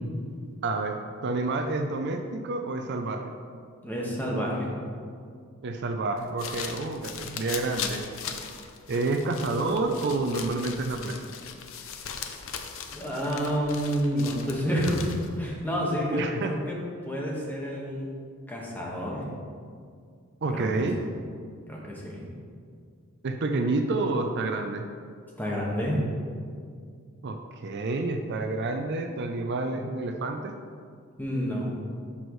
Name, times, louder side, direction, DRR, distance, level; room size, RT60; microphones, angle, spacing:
voice 1, 0.6-3.3 5.6-8.0 8.9-11.2 16.1-16.5 20.4-21.0 23.2-24.9 27.2-30.5, right 3 dB, 50° right, 5 dB, 0.5 m, -29 dB
voice 2, 3.8-4.7 12.9-15.0 15.4-16.8 17.0-18.1 18.5-19.2 20.5-20.9 21.7-22.3 25.4-26.0 31.2-31.7, equal, 10° left, -4 dB, 1.5 m, -29 dB
sound 1, 6.2-15.4, left 7 dB, 65° left, 0.6 m, -39 dB
11.5 x 6.2 x 3.1 m, 2.2 s
head